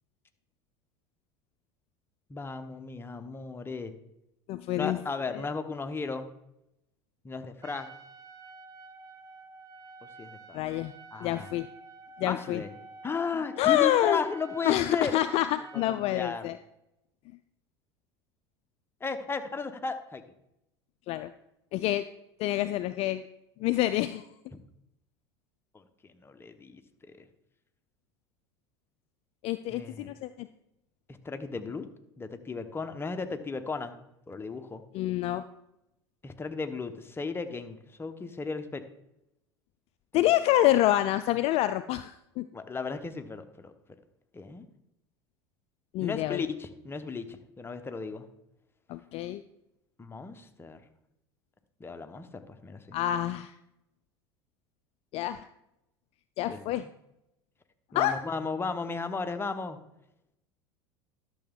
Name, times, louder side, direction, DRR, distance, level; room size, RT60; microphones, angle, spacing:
voice 1, 2.3-3.9 4.8-6.3 7.2-7.9 10.0-10.6 11.1-11.5 12.2-12.7 13.0-15.2 15.7-16.5 19.0-20.2 24.5-24.6 25.7-27.3 29.7-30.1 31.2-31.9 32.2-34.0 34.3-34.8 36.2-38.8 40.1-40.2 42.5-43.7 44.3-44.7 46.0-48.3 50.0-50.8 51.8-53.0 56.5-56.9 57.9-59.8, left 4 dB, 15° left, 8 dB, 1.0 m, -35 dB
voice 2, 4.5-5.0 10.5-10.9 11.2-11.7 12.2-12.6 13.6-14.2 14.6-16.6 21.1-21.3 21.7-22.0 22.4-23.2 23.6-24.2 29.4-30.5 34.9-35.4 40.1-42.4 45.9-46.4 48.9-49.4 52.9-53.5 55.1-55.5 56.4-56.8 57.9-58.2, left 14 dB, 45° left, 13 dB, 0.4 m, -27 dB
Trumpet, 7.6-16.0, right 4 dB, 25° right, 1.3 m, -49 dB
12.0 x 7.0 x 3.7 m, 0.84 s
figure-of-eight pair, 75°, 14 cm